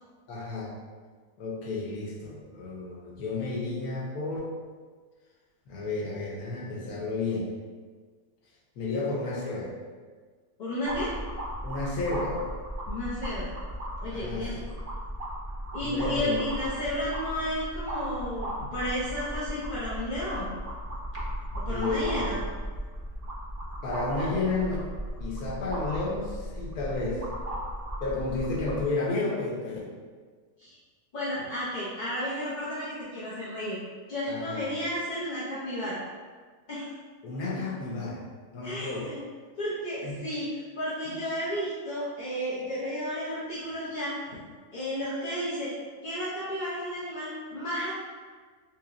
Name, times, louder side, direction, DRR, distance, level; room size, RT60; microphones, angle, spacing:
voice 1, 0.3-0.7 1.4-4.4 5.7-7.5 8.8-9.7 11.6-12.4 14.1-14.5 15.8-16.5 21.7-22.3 23.8-24.8 25.2-27.2 28.0-29.8 34.3-34.6 37.2-38.2 38.5-39.1 40.0-40.2 41.1-41.2, left 3 dB, 85° left, -3 dB, 1.2 m, -32 dB
voice 2, 10.6-11.1 12.9-13.5 14.0-14.6 15.7-20.5 21.5-22.4 30.6-30.7 31.1-33.8 34.1-36.0 36.7-36.9 38.6-39.2 39.6-44.4 44.7-45.7 46.0-47.9, equal, 50° left, -10 dB, 0.6 m, -32 dB
sound 1, 10.9-28.9, equal, 90° right, 0.3 m, -36 dB
3.6 x 2.9 x 2.5 m, 1.5 s
omnidirectional pair, 1.6 m